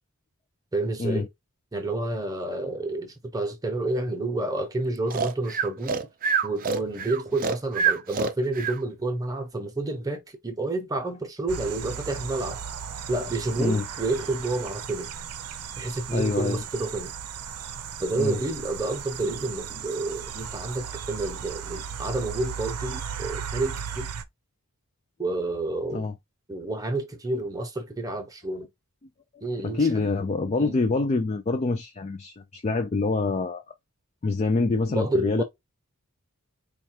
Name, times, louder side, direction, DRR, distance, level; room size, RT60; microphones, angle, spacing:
voice 1, 0.7-1.3 1.7-6.0 6.4-12.6 13.1-15.1 15.8-17.1 18.0-24.1 25.2-26.1 26.5-28.7 29.4-29.9 30.6-30.8 34.9-35.4, right 2 dB, 15° right, 0.8 m, -29 dB
Breathing, 5.1-8.8, right 6 dB, 40° right, 0.5 m, -26 dB
sound 1, 11.5-24.2, right 7 dB, 90° right, 0.6 m, -36 dB
voice 2, 16.1-16.6 18.2-18.4 25.9-26.1 29.6-33.6 34.2-35.4, left 3 dB, 30° left, 0.4 m, -26 dB
4.3 x 2.4 x 2.8 m
head